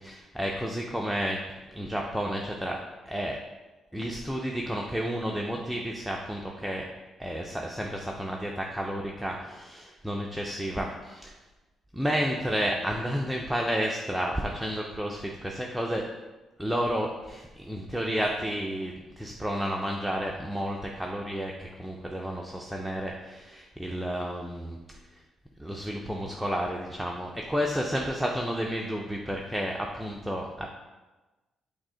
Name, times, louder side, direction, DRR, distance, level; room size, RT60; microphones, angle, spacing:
voice 1, 0.0-2.8 3.1-3.4 3.9-6.9 7.2-11.3 11.9-16.1 16.6-24.8 25.1-25.2 25.6-30.7, equal, 5° right, -1 dB, 0.4 m, -31 dB
6.1 x 2.1 x 3.8 m, 1.2 s
cardioid pair, 90°, 0 cm